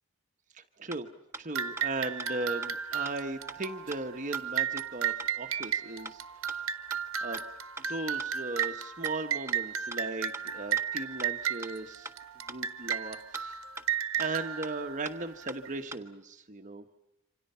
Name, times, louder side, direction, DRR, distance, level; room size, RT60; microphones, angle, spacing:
voice 1, 0.5-1.1 1.4-6.9 7.2-7.4 7.9-12.1 12.5-13.6 14.2-17.0, right 2 dB, 35° right, 6 dB, 1.2 m, -37 dB
sound 1, 0.9-1.0 1.3-1.4 1.8-1.9 2.2-2.3 2.6-2.7 3.0-3.1 3.5-3.6 3.9-4.0 4.3-4.4 4.8-4.9 5.2-5.3 5.6-5.7 6.0-6.1 6.5-6.6 6.9-7.0 7.3-7.4 7.8-7.9 8.2-8.3 8.6-8.7 9.0-9.1 9.5-9.6 9.9-10.0 10.3-10.4 10.8-10.9 11.2-11.3 11.6-11.7 12.0-12.1 12.5-12.6 12.9-13.0 13.3-13.4 13.8-13.9 14.2-14.3 14.6-14.7 15.0-15.1 15.5-15.6 15.9-16.0, right 2 dB, 10° right, 1.5 m, -41 dB
sound 2, 1.6-15.7, right 8 dB, 65° right, 1.4 m, -34 dB
28.0 x 26.0 x 5.7 m, 0.92 s
head